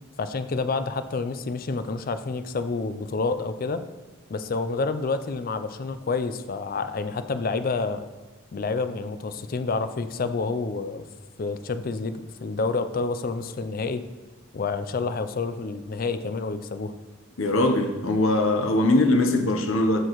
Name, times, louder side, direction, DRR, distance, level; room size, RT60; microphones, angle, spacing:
voice 1, 0.2-3.8 4.3-8.1 8.5-11.0 11.4-14.0 14.5-16.9, left 4 dB, 45° left, 10 dB, 0.4 m, -28 dB
voice 2, 17.4-20.0, left 2 dB, 70° left, 3 dB, 0.8 m, -21 dB
13.0 x 4.5 x 3.0 m, 1.2 s
head